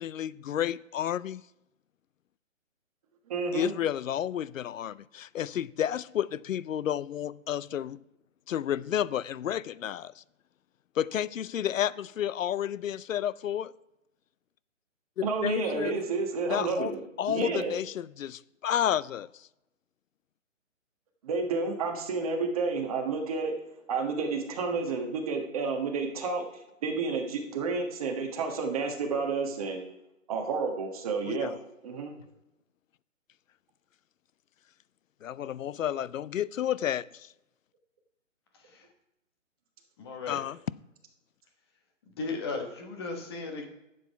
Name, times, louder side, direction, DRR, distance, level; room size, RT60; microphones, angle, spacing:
voice 1, 0.0-1.4 3.5-8.0 8.5-10.2 11.0-13.7 15.2-15.9 16.5-16.9 17.2-19.5 31.2-31.5 35.2-37.3 40.3-40.6, left 10 dB, 75° left, 0.6 m, -31 dB
voice 2, 3.3-3.7 15.2-17.0 17.3-17.7 21.2-23.5 23.9-26.5 26.8-29.8 30.3-31.5 31.8-32.1, right 4 dB, 30° right, 1.4 m, -30 dB
voice 3, 40.0-40.4 42.2-43.7, left 3 dB, 20° left, 1.2 m, -36 dB
12.0 x 7.7 x 4.6 m
hypercardioid pair, 165°, 40 cm